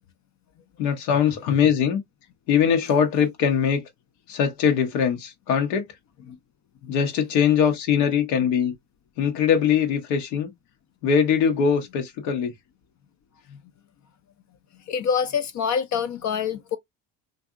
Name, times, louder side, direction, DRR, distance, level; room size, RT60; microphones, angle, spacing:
voice 1, 0.8-2.0 2.5-3.8 4.3-5.9 6.9-8.7 9.2-10.5 11.0-12.5, left 7 dB, 85° left, 0.9 m, -21 dB
voice 2, 14.9-16.8, left 7 dB, 40° left, 0.4 m, -25 dB
2.6 x 2.5 x 2.3 m
supercardioid pair, 80°, 47 cm